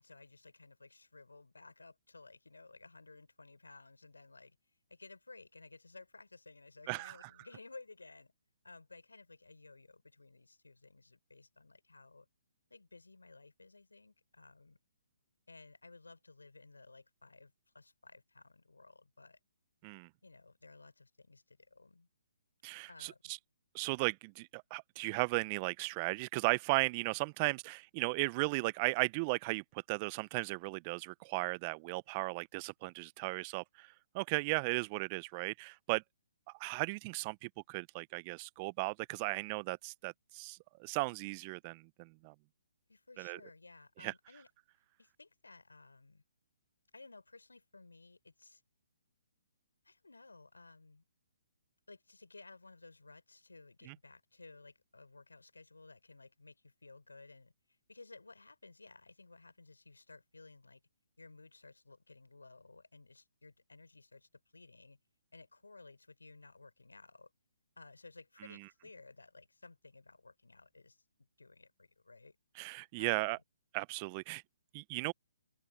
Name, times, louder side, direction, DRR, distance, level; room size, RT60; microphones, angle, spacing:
voice 1, 0.0-4.6 4.9-8.3 8.6-12.3 12.7-14.8 15.5-19.4 20.2-22.1 22.9-23.2 42.9-44.5 45.0-46.2 46.9-48.6 49.8-51.0 51.9-57.5 57.9-60.8 61.2-65.0 65.3-67.3 67.8-71.0 71.4-72.4 73.0-73.4, left 3 dB, 85° left, 4.6 m, -56 dB
voice 2, 6.9-7.3 19.8-20.1 22.6-23.4 23.7-33.9 34.1-36.0 36.6-42.3 43.2-43.4 44.0-44.1 53.9-54.0 72.6-73.4 73.7-74.4 74.7-75.1, right 28 dB, 30° right, 0.6 m, -36 dB
figure-of-eight pair, 135°, 0 cm